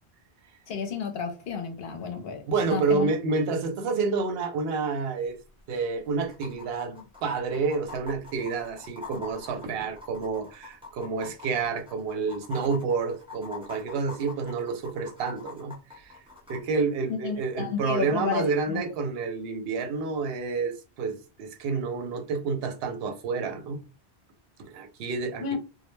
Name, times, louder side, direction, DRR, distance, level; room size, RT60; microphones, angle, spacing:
voice 1, 0.7-2.4 2.7-3.1 17.1-18.8 25.4-25.6, left 6 dB, 70° left, 0.8 m, -31 dB
voice 2, 2.5-5.4 5.7-16.2 16.5-23.8 24.6-25.6, right 4 dB, 75° right, 0.8 m, -29 dB
sound 1, 5.3-5.4 5.6-5.7 6.3-16.6 18.3-18.4, left 5 dB, 5° right, 0.5 m, -44 dB
2.2 x 2.1 x 3.0 m
omnidirectional pair, 1.1 m